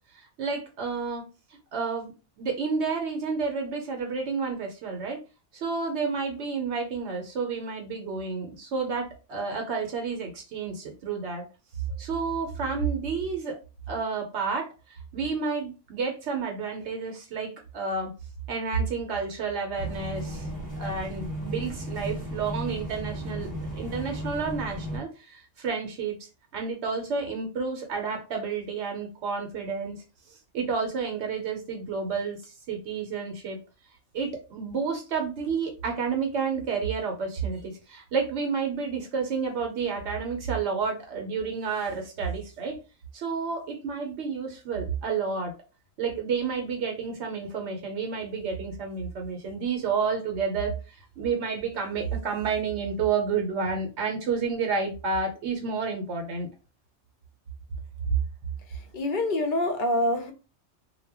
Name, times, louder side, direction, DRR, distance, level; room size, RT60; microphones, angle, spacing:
voice 1, 0.1-1.2 1.7-2.1 2.4-5.2 5.5-11.4 12.0-13.6 13.9-18.1 18.5-20.5 20.8-23.5 23.8-30.0 30.3-33.6 34.1-42.8 43.1-45.5 46.0-56.5, right 5 dB, 70° right, 0.9 m, -30 dB
sound 1, 19.8-25.0, equal, 20° right, 0.7 m, -35 dB
voice 2, 58.9-60.3, left 1 dB, 60° left, 0.5 m, -25 dB
2.1 x 2.1 x 3.3 m
omnidirectional pair, 1.2 m